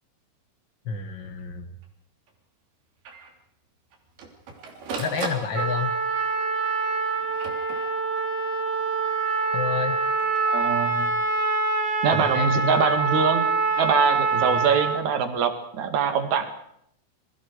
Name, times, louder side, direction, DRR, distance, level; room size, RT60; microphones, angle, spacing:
voice 1, 0.8-1.7 5.0-5.9 9.5-10.0 12.1-12.8, left 6 dB, 65° left, 5 dB, 1.1 m, -29 dB
Printer, 1.4-1.5 1.8-1.9 2.3-2.4 3.1-3.3 3.9-6.0 6.8-8.3 10.0-10.4, right 4 dB, 80° right, 5.3 m, -38 dB
Trumpet, 5.5-15.0, right 4 dB, 25° right, 2.2 m, -25 dB
voice 2, 10.5-11.1 12.0-13.5 13.8-16.5, right 6 dB, 55° right, 7 dB, 3.3 m, -23 dB
29.0 x 23.0 x 4.8 m, 0.72 s
omnidirectional pair, 4.4 m